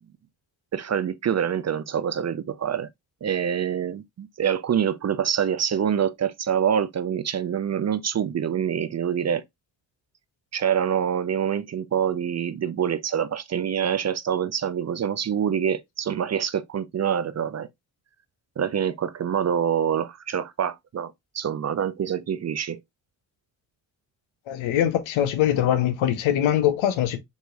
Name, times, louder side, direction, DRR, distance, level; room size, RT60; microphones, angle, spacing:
voice 1, 0.7-2.9 3.2-9.4 10.5-17.7 18.6-22.8, right 8 dB, 35° right, 0.5 m, -26 dB
voice 2, 24.5-27.2, left 11 dB, 80° left, 0.8 m, -22 dB
5.5 x 3.0 x 2.3 m
supercardioid pair, 50°, 47 cm